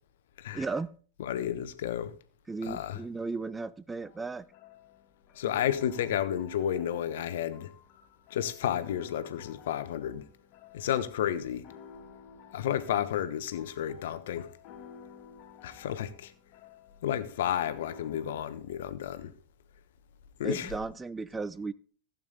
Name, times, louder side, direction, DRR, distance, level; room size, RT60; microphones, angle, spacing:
voice 1, 0.5-0.9 2.5-4.5 20.4-21.7, right 3 dB, 10° right, 0.5 m, -35 dB
voice 2, 1.2-2.1 2.6-3.0 5.4-7.7 8.3-10.2 10.7-11.6 12.5-14.5 15.6-16.3 17.0-19.3 20.4-20.7, left 10 dB, 55° left, 1.2 m, -31 dB
sound 1, 4.0-18.4, left 7 dB, 40° left, 2.4 m, -53 dB
15.5 x 8.7 x 4.0 m
figure-of-eight pair, 90°, 0 cm